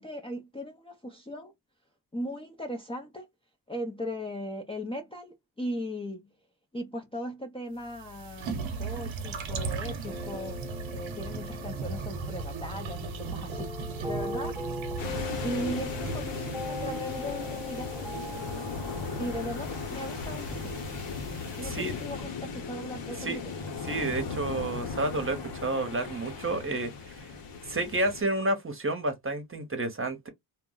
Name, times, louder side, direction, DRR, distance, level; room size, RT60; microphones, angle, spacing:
voice 1, 0.0-1.5 2.1-3.3 3.7-6.3 6.7-10.6 10.9-14.6 15.4-17.9 19.2-20.8 21.6-23.4, equal, 10° left, 0.5 m, -38 dB
sound 1, 7.8-22.1, right 4 dB, 90° right, 0.8 m, -38 dB
sound 2, 10.1-19.5, left 2 dB, 5° right, 1.0 m, -40 dB
sound 3, 15.0-28.2, left 5 dB, 70° left, 1.0 m, -37 dB
voice 2, 21.6-21.9 23.2-23.4 23.9-27.3 27.7-30.3, right 2 dB, 30° right, 0.9 m, -30 dB
2.2 x 2.0 x 3.7 m
cardioid pair, 75°, 45 cm